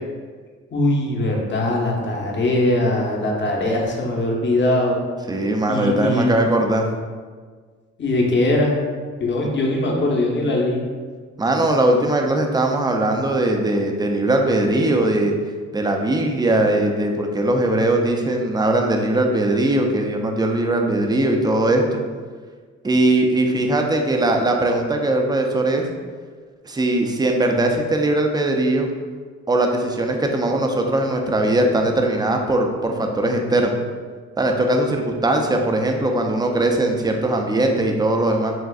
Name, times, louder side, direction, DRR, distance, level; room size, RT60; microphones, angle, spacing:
voice 1, 0.7-5.0 5.7-6.3 8.0-8.8 9.2-10.8, left 1 dB, 40° left, -1 dB, 0.8 m, -21 dB
voice 2, 5.3-6.9 11.4-15.3 15.7-22.0 22.8-25.9 26.6-28.9 29.5-33.8 34.4-38.5, right 1 dB, 15° right, 3 dB, 0.4 m, -20 dB
6.1 x 2.4 x 2.4 m, 1.5 s
cardioid pair, 90°, 30 cm